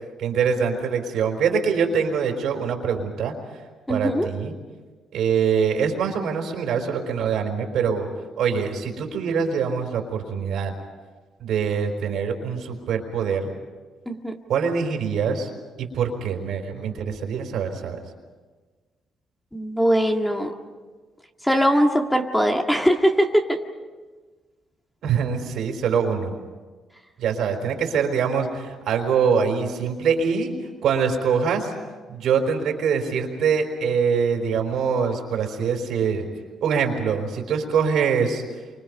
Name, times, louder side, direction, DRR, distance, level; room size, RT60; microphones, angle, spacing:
voice 1, 0.2-3.3 3.9-4.5 5.1-8.1 8.4-10.7 11.4-13.5 14.5-15.5 15.8-18.0 25.0-26.4 27.2-30.5 30.8-31.7 32.1-36.3 36.6-38.4, right 6 dB, 75° right, 4 dB, 4.4 m, -24 dB
voice 2, 3.9-4.3 14.1-14.4 19.5-20.5 21.4-23.6, equal, 5° left, 3 dB, 1.9 m, -21 dB
28.5 x 25.0 x 5.4 m, 1.4 s
cardioid pair, 90°, 0 cm